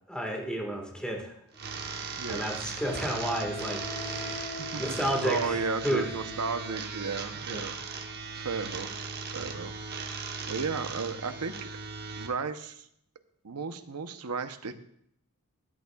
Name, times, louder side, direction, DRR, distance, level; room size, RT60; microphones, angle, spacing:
voice 1, 0.1-1.3 2.3-6.1 7.5-7.6, right 1 dB, 5° left, 1 dB, 1.6 m, -32 dB
Wind instrument woodwind instrument, 1.5-1.6 2.8-6.9, left 2 dB, 35° left, 1.8 m, -41 dB
sound 1, 1.5-12.3, right 4 dB, 45° right, 1.0 m, -38 dB
voice 2, 2.2-2.5 4.4-7.7 8.3-9.8 10.5-11.7 12.2-12.9 13.4-14.7, right 5 dB, 90° right, 9 dB, 0.8 m, -34 dB
13.0 x 11.0 x 2.3 m, 0.73 s
head